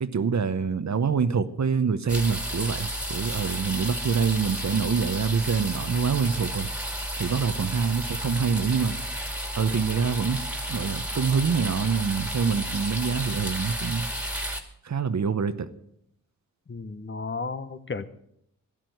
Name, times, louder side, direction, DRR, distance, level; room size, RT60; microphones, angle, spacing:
voice 1, 0.0-6.7 7.2-9.0 9.6-14.1 14.8-15.7, right 6 dB, 55° right, 0.9 m, -26 dB
sound 1, 2.1-14.6, right 1 dB, 5° right, 2.1 m, -32 dB
voice 2, 16.7-18.0, left 4 dB, 35° left, 0.9 m, -33 dB
12.5 x 10.5 x 7.8 m
cardioid pair, 65°, 32 cm